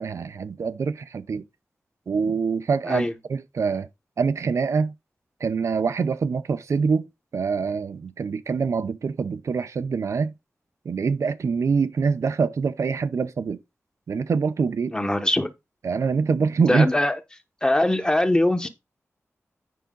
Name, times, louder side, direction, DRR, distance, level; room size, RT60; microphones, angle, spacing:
voice 1, 0.0-1.4 2.1-3.9 4.2-4.9 5.4-10.3 10.9-13.6 14.1-14.9 15.8-16.9, right 5 dB, 75° right, 0.5 m, -25 dB
voice 2, 14.9-15.5 16.7-17.1 17.6-18.7, left 1 dB, 15° left, 1.0 m, -21 dB
9.4 x 4.8 x 3.8 m
wide cardioid pair, 125°, 5 cm